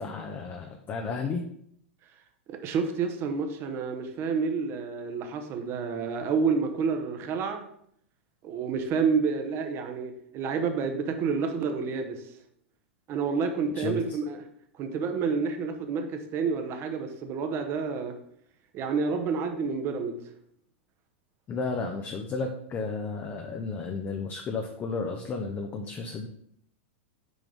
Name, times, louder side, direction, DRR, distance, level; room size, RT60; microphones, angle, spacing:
voice 1, 0.0-1.4 13.7-14.0 21.5-26.3, left 4 dB, 30° left, 4 dB, 0.6 m, -33 dB
voice 2, 2.5-7.6 8.4-12.2 13.1-14.4 14.8-18.2 18.7-20.3, right 5 dB, 40° right, 5 dB, 0.9 m, -29 dB
6.3 x 4.9 x 3.5 m, 0.68 s
hypercardioid pair, 95°, 7 cm